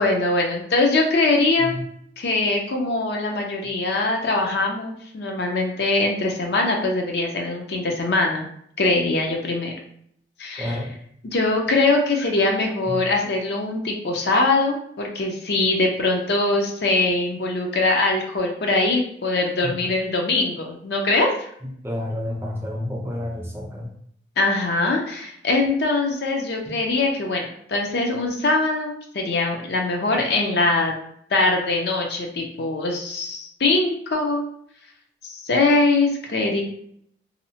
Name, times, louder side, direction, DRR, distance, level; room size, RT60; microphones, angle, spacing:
voice 1, 0.0-1.8 2.2-8.5 8.8-9.7 10.4-10.8 11.2-21.3 24.4-31.0 31.3-34.4 35.2-36.6, left 2 dB, 65° left, 1 dB, 0.5 m, -22 dB
voice 2, 10.6-10.9 12.9-13.0 19.6-19.8 21.8-23.9, left 1 dB, 15° right, -1 dB, 0.4 m, -29 dB
2.7 x 2.0 x 2.7 m, 0.67 s
head